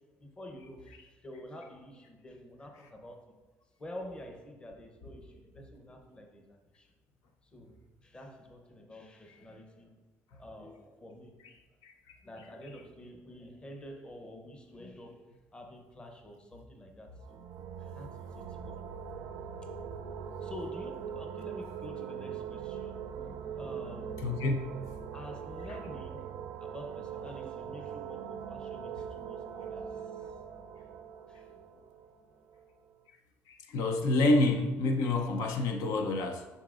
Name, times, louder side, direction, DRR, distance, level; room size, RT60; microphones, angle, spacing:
voice 1, 0.2-3.3 3.8-6.9 7.4-9.9 10.3-11.4 12.2-15.2 15.5-17.4 17.8-18.9 19.7-20.1 20.4-24.2 25.1-26.2 26.6-31.0 31.3-31.8, left 1 dB, 15° left, 2 dB, 0.8 m, -48 dB
voice 2, 11.8-12.2 24.2-24.6 33.5-36.5, left 2 dB, 80° left, 3 dB, 0.7 m, -28 dB
sound 1, 17.2-32.7, right 7 dB, 85° right, 0.5 m, -42 dB
11.0 x 3.9 x 2.5 m, 1.2 s
cardioid pair, 140°, 6 cm